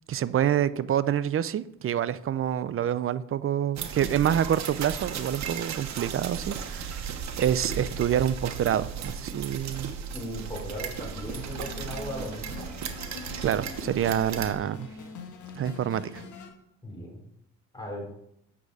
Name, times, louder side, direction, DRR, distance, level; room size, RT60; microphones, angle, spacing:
voice 1, 0.1-7.1 7.4-9.9 13.4-14.9 15.5-16.2, right 10 dB, 45° right, 16 dB, 0.5 m, -27 dB
sound 1, 3.7-14.5, right 7 dB, 65° right, 1.2 m, -36 dB
voice 2, 10.1-12.7 16.8-17.2 17.7-18.1, left 1 dB, 15° left, -1 dB, 4.3 m, -37 dB
sound 2, 11.2-16.5, left 5 dB, 75° left, 1.8 m, -43 dB
8.4 x 6.8 x 4.9 m, 0.74 s
cardioid pair, 90°, 30 cm